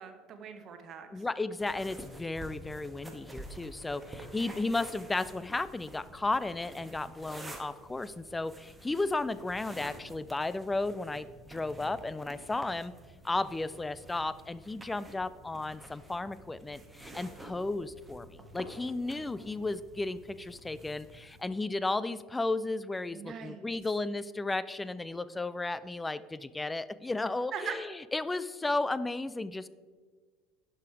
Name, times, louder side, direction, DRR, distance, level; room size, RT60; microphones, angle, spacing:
voice 1, 0.0-1.2 19.0-19.7 23.1-23.6 27.5-27.7, right 7 dB, 40° right, 7 dB, 1.0 m, -42 dB
voice 2, 1.1-12.9 13.2-27.9 28.1-29.7, left 2 dB, 15° left, 16 dB, 0.3 m, -34 dB
sound 1, 1.6-21.4, right 1 dB, 10° right, 1.2 m, -50 dB
11.0 x 5.1 x 4.7 m, 1.5 s
figure-of-eight pair, 65°, 0 cm